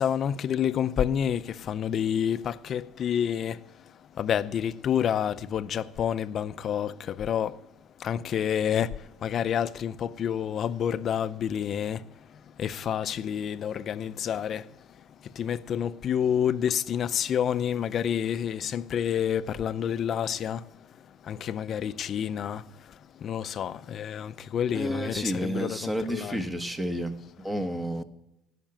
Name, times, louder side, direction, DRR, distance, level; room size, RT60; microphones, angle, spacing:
voice 1, 0.0-1.4 1.7-3.6 4.2-6.9 7.2-7.5 8.0-8.9 9.2-12.0 12.6-14.6 15.4-20.6 21.3-22.6 23.2-26.4, left 9 dB, 45° left, 0.5 m, -28 dB
voice 2, 24.7-27.2 27.4-28.0, equal, 10° right, 1.1 m, -30 dB
16.5 x 6.0 x 8.8 m
cardioid pair, 125°, 0 cm